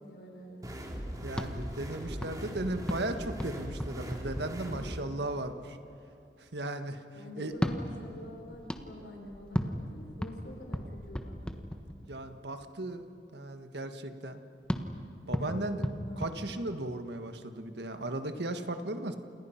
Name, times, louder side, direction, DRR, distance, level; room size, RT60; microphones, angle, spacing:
voice 1, 0.1-0.8 4.7-5.0 7.1-11.7 15.2-16.3, left 1 dB, 70° left, 1 dB, 4.8 m, -46 dB
sound 1, 0.6-5.0, equal, 20° right, 2.6 m, -40 dB
voice 2, 1.2-5.8 6.4-7.0 7.4-7.5 12.1-13.0 13.3-14.4 15.3-15.8 16.2-19.2, right 1 dB, 70° right, 8 dB, 1.5 m, -36 dB
sound 2, 1.3-5.1 7.5-12.3 14.7-17.1, equal, 5° left, 1.3 m, -37 dB
29.5 x 28.5 x 5.8 m, 2.7 s
head